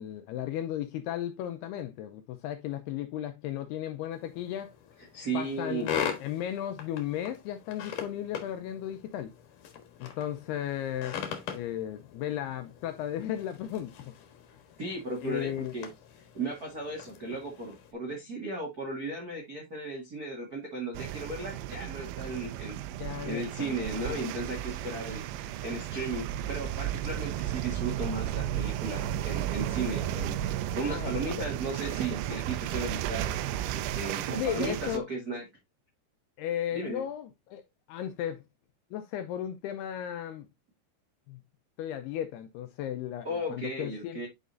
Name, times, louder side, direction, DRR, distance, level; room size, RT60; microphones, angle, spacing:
voice 1, 0.0-4.7 5.3-9.3 10.0-11.2 11.5-14.1 15.2-15.7 23.0-23.8 24.1-24.3 30.8-31.1 31.4-31.5 34.4-35.1 36.4-37.6 37.9-38.4 38.9-40.5 41.3-41.4 41.8-44.2, left 11 dB, 80° left, 2.4 m, -35 dB
sound 1, 4.2-17.9, left 8 dB, 60° left, 2.3 m, -41 dB
voice 2, 5.1-5.9 14.8-15.9 16.3-22.8 23.2-33.4 33.7-35.4 36.7-37.0 43.2-44.3, right 2 dB, 60° right, 0.9 m, -35 dB
sound 2, 20.9-35.0, right 12 dB, 80° right, 2.9 m, -34 dB
10.5 x 5.1 x 2.6 m
omnidirectional pair, 5.2 m